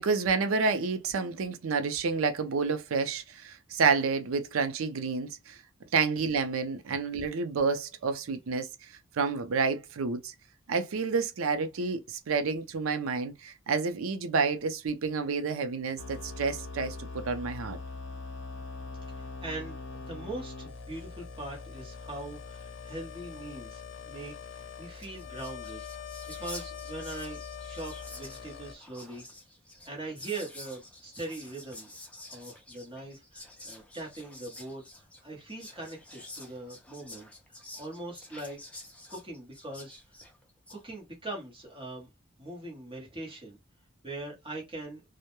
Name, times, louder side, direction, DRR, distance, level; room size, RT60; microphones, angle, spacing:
voice 1, 0.0-5.6 5.9-10.3 10.7-17.8, right 4 dB, 90° right, 0.5 m, -29 dB
sound 1, 16.0-28.7, left 4 dB, 65° left, 0.6 m, -42 dB
voice 2, 19.1-25.8 26.3-29.2 29.8-31.9 32.3-37.3 37.5-38.6 39.1-40.0 40.7-42.1 42.4-43.6 44.0-45.0, right 2 dB, 25° right, 0.9 m, -41 dB
Whispering, 24.6-24.7 24.9-40.8, left 2 dB, 5° left, 0.5 m, -49 dB
2.2 x 2.1 x 2.9 m
head